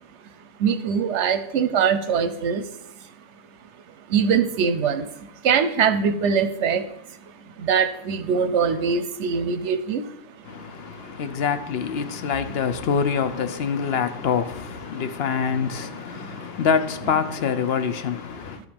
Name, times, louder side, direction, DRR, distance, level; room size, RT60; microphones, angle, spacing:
voice 1, 0.6-2.7 4.1-6.8 7.2-7.3 7.6-10.1 16.1-16.5, right 6 dB, 80° right, 1.0 m, -22 dB
voice 2, 10.4-18.6, left 6 dB, 60° left, 0.9 m, -25 dB
11.0 x 5.0 x 5.2 m
omnidirectional pair, 1.2 m